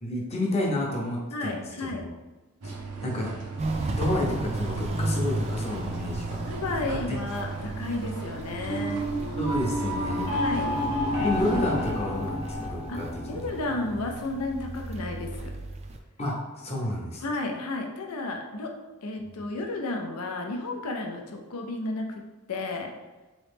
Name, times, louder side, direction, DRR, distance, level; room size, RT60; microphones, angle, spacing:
voice 1, 0.0-2.0 2.6-2.8 3.0-3.3 3.9-6.4 6.9-7.2 9.4-10.3 11.1-13.5 16.2-17.2, left 1 dB, 30° left, -2 dB, 0.7 m, -30 dB
voice 2, 1.3-2.1 6.5-9.1 10.3-10.8 12.9-13.0 13.3-15.6 17.2-18.7 19.0-22.2 22.5-22.9, left 2 dB, 85° left, 2 dB, 0.6 m, -32 dB
sound 1, 2.6-11.9, right 4 dB, 85° right, 0.6 m, -37 dB
Walk footsteps, 3.6-16.0, right 2 dB, 30° right, 0.3 m, -35 dB
sound 2, 8.6-13.7, left 1 dB, 70° left, 1.0 m, -30 dB
3.8 x 3.1 x 3.4 m, 1.2 s
head